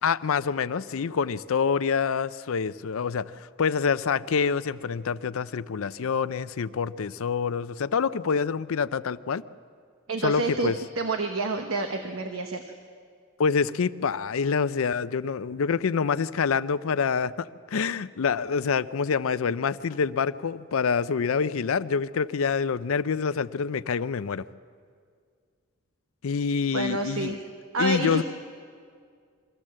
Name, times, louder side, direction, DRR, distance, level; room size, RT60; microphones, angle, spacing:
voice 1, 0.0-9.4 10.2-10.8 13.4-24.5 26.2-27.4 27.8-28.2, left 6 dB, 70° left, 15 dB, 0.5 m, -26 dB
voice 2, 10.1-12.6 26.7-27.4 27.7-28.2, right 2 dB, 70° right, 5 dB, 1.0 m, -28 dB
23.5 x 15.5 x 7.5 m, 2.1 s
head